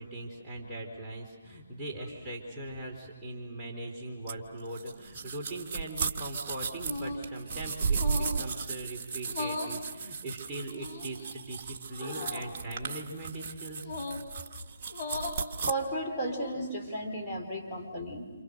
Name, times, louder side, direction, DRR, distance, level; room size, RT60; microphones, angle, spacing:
voice 1, 0.0-13.9, right 2 dB, 10° right, -5 dB, 4.3 m, -40 dB
sound 1, 4.3-15.7, right 5 dB, 35° right, 1.7 m, -35 dB
sound 2, 6.8-7.3 7.9-8.4 9.2-9.8 10.7-11.3 12.1-12.5 13.8-14.3 14.9-15.4 16.1-16.7, left 3 dB, 30° left, 5.2 m, -37 dB
voice 2, 12.0-12.6 15.6-18.2, right 1 dB, 10° left, -5 dB, 4.7 m, -35 dB
29.5 x 28.5 x 6.8 m, 1.3 s
figure-of-eight pair, 145°, 0 cm